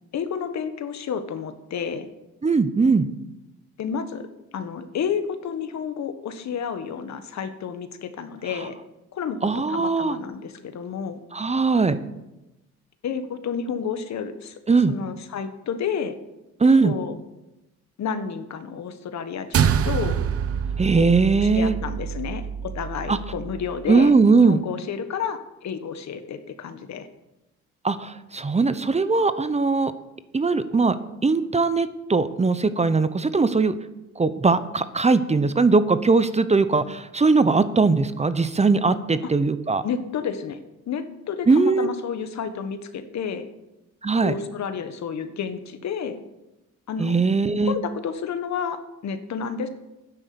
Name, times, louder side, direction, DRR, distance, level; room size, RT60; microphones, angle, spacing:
voice 1, 0.1-2.1 3.8-4.3 4.5-8.8 9.1-11.2 13.0-14.6 14.9-16.2 16.8-17.1 18.0-20.2 20.9-21.1 21.4-27.1 39.8-43.5 44.2-46.2 46.9-47.2 47.6-49.7, left 7 dB, 65° left, 10 dB, 1.5 m, -31 dB
voice 2, 2.4-3.1 9.4-10.2 11.3-12.0 14.7-14.9 16.6-16.9 20.8-21.8 23.1-23.2 23.9-24.6 27.8-29.9 30.3-31.0 31.2-33.7 34.2-39.8 41.5-41.9 44.0-44.3 47.0-47.7, right 4 dB, 20° right, 13 dB, 0.9 m, -20 dB
sound 1, 19.5-24.1, right 8 dB, 50° right, 0.8 m, -26 dB
11.5 x 9.9 x 7.0 m, 0.97 s
cardioid pair, 90°, 30 cm